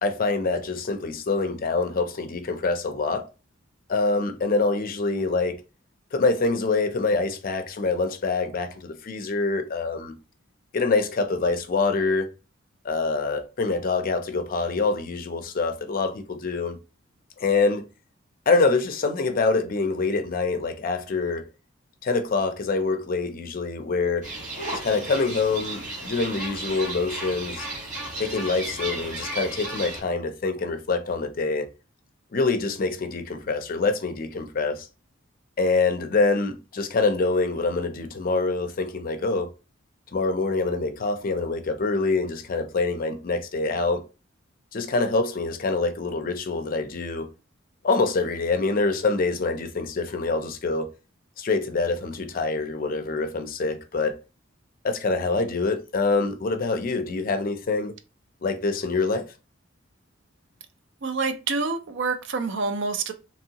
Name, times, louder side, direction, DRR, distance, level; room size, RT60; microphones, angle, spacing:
voice 1, 0.0-3.2 3.9-5.6 6.1-10.1 10.7-12.3 12.8-16.8 17.4-17.8 18.5-21.4 22.0-24.3 24.7-27.7 28.2-31.7 32.3-34.9 35.6-39.5 40.1-44.0 44.7-47.3 47.8-50.9 51.4-54.2 54.8-57.9 58.4-59.3, left 3 dB, 45° left, 0.4 m, -25 dB
sound 1, 24.2-30.0, right 2 dB, 40° right, 1.3 m, -34 dB
voice 2, 61.0-63.1, right 4 dB, 60° right, 0.5 m, -27 dB
2.9 x 2.7 x 2.8 m
head